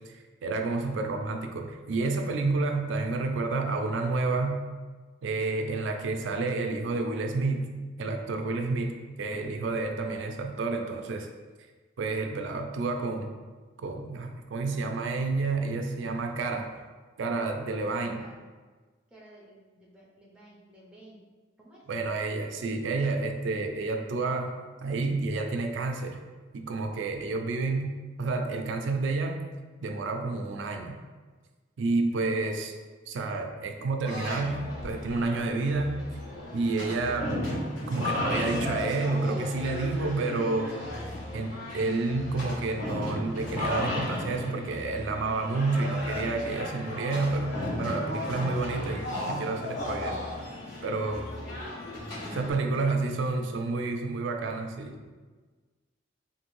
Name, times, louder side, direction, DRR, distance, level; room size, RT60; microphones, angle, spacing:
voice 1, 0.1-4.6 5.2-7.7 8.0-11.3 12.0-13.3 13.8-16.7 17.2-18.2 21.9-24.5 24.8-26.2 26.5-29.4 29.8-30.9 31.8-32.7 33.1-35.9 36.5-37.4 37.9-40.8 41.3-50.2 50.8-51.2 52.4-55.0, right 3 dB, 65° right, 4 dB, 0.3 m, -30 dB
voice 2, 18.1-18.5 19.1-21.2 21.6-21.8 52.0-53.1, right 1 dB, 5° right, -5 dB, 0.5 m, -52 dB
sound 1, 34.0-52.5, left 1 dB, 90° left, 1.2 m, -35 dB
2.6 x 2.5 x 3.0 m, 1.4 s
head